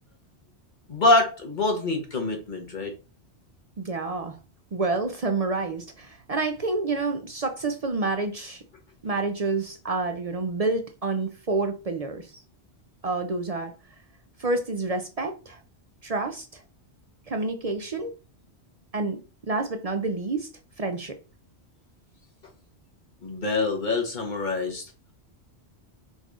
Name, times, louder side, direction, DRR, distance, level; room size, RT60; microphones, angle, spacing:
voice 1, 0.9-2.9 23.2-24.8, left 2 dB, 45° left, 1.3 m, -25 dB
voice 2, 3.8-4.4 4.7-8.6 9.0-12.4 13.0-13.7 14.4-15.6 16.0-16.6 17.3-18.1 18.9-19.2 19.5-20.5 20.8-21.2, right 3 dB, 45° right, 0.5 m, -28 dB
3.9 x 2.6 x 4.7 m
omnidirectional pair, 1.1 m